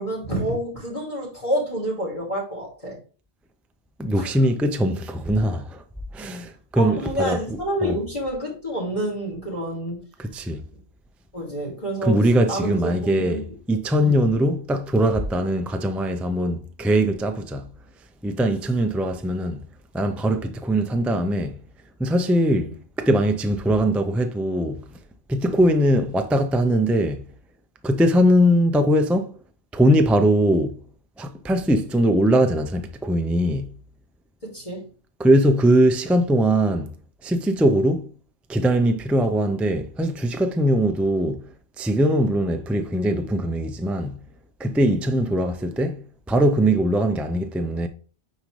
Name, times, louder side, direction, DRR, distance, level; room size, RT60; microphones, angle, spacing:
voice 1, 0.0-3.0 4.2-4.4 6.7-10.0 11.3-12.2 12.5-13.4 14.0-14.2 22.5-22.7 34.4-34.9, right 1 dB, 35° left, 2.5 m, -28 dB
voice 2, 4.0-5.8 6.1-8.0 10.2-10.6 12.0-17.7 18.2-19.6 19.9-21.6 22.0-22.7 23.0-24.8 25.3-27.2 27.8-29.3 29.7-30.8 31.2-33.7 35.2-36.9 37.2-38.1 38.5-41.5 41.8-44.2 44.6-47.9, right 1 dB, ahead, 0.4 m, -21 dB
9.6 x 3.8 x 3.2 m
omnidirectional pair, 1.1 m